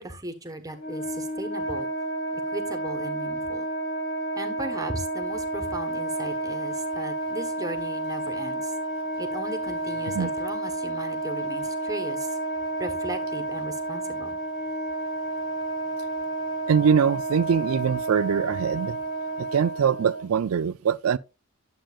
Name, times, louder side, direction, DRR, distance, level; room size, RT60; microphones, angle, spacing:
voice 1, 0.0-1.9 2.5-3.7 4.3-8.7 9.2-12.3 12.8-14.4, right 2 dB, 15° right, 1.1 m, -36 dB
Wind instrument woodwind instrument, 0.7-20.2, right 2 dB, 85° left, 2.6 m, -31 dB
voice 2, 16.7-19.0 19.4-21.2, right 7 dB, 70° right, 0.4 m, -23 dB
10.0 x 7.6 x 2.4 m
head